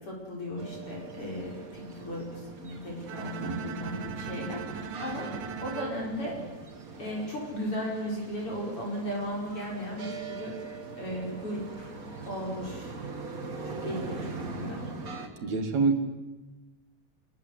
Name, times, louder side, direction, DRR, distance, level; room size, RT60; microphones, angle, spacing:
voice 1, 0.0-6.4 7.0-12.0 12.2-12.9 13.6-14.8, equal, 45° left, -2 dB, 6.2 m, -36 dB
sound 1, 0.6-15.3, right 3 dB, 30° right, 2.3 m, -41 dB
Bowed string instrument, 3.1-7.2, right 8 dB, 90° right, 2.6 m, -41 dB
voice 2, 3.4-3.8 15.4-16.0, right 4 dB, 65° right, 5 dB, 3.4 m, -27 dB
26.5 x 22.0 x 8.1 m, 1.1 s
omnidirectional pair, 3.4 m